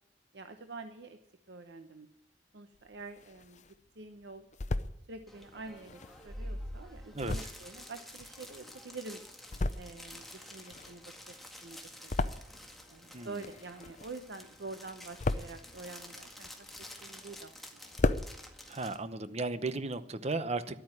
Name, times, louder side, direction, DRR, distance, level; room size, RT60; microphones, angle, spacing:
voice 1, 0.3-1.2 1.5-2.1 2.5-3.6 4.0-4.5 5.1-9.2 9.8-11.4 11.6-12.3 12.9-16.7 17.0-17.5 18.0-18.1, right 3 dB, 75° right, 0.9 m, -47 dB
sound 1, 2.8-3.8 4.2-5.0 5.7-8.9 9.3-10.1 10.4-12.8 13.1-14.4 14.7-15.7 16.2-17.3 17.6-17.7 17.9-18.3, left 2 dB, 45° left, 0.6 m, -35 dB
sound 2, 5.3-19.0, left 1 dB, ahead, 1.9 m, -49 dB
voice 2, 18.7-20.8, right 3 dB, 40° right, 0.9 m, -35 dB
12.0 x 8.9 x 9.8 m
head